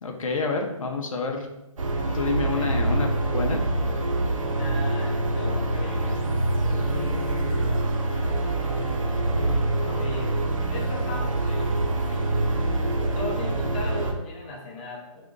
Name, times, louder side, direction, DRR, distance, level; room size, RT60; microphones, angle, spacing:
voice 1, 0.0-1.5 2.1-3.6, left 4 dB, 80° left, 2 dB, 0.7 m, -28 dB
sound 1, 1.8-14.1, right 2 dB, 75° right, 0.7 m, -25 dB
voice 2, 2.5-3.9 4.6-6.2 6.5-7.9 9.3-12.4 13.0-15.2, left 2 dB, 15° left, -2 dB, 0.5 m, -38 dB
2.8 x 2.5 x 3.6 m, 0.91 s
hypercardioid pair, 165°, 17 cm